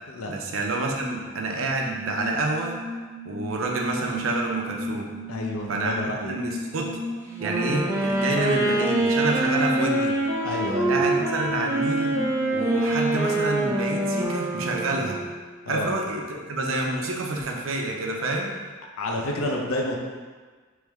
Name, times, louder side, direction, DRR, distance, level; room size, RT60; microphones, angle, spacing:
voice 1, 0.3-2.8 3.2-5.1 5.7-6.0 6.3-6.9 7.4-10.2 10.9-12.2 12.5-15.2 15.7-18.5, right 2 dB, 70° right, 0 dB, 0.6 m, -28 dB
sound 1, 1.7-14.2, equal, 20° left, 0.8 m, -36 dB
voice 2, 5.3-6.3 10.4-11.1 15.7-15.9 19.0-20.0, left 1 dB, 85° left, 1 dB, 0.6 m, -29 dB
Wind instrument woodwind instrument, 7.3-15.4, right 2 dB, 10° right, 0.4 m, -25 dB
3.2 x 3.1 x 3.5 m, 1.4 s
head